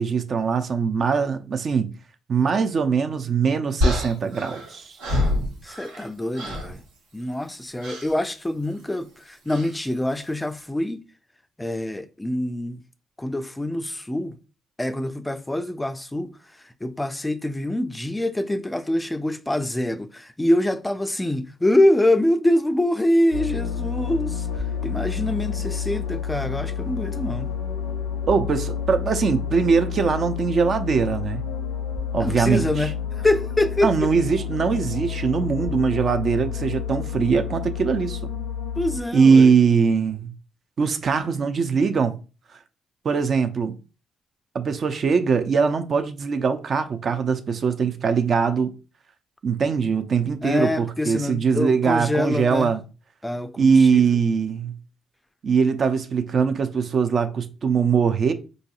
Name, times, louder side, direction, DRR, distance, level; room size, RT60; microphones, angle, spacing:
voice 1, 0.0-1.9 2.3-5.0 28.3-31.4 32.1-32.9 33.8-38.2 39.1-40.3 40.8-42.2 43.0-43.8 44.5-48.7 49.4-52.8 53.6-54.7 55.4-58.3, right 5 dB, 50° right, 0.4 m, -21 dB
sound 1, 3.8-6.1 6.3-6.8 7.8-8.1 9.5-9.8, left 1 dB, 85° right, 1.0 m, -26 dB
voice 2, 5.6-6.8 7.1-11.0 11.6-12.8 13.2-14.4 14.8-27.5 32.2-34.1 38.8-39.5 50.4-52.7 53.2-54.0, left 1 dB, 15° left, 0.3 m, -25 dB
sound 2, 23.3-39.0, left 7 dB, 85° left, 0.5 m, -29 dB
4.0 x 2.6 x 2.3 m
hypercardioid pair, 50°, 0 cm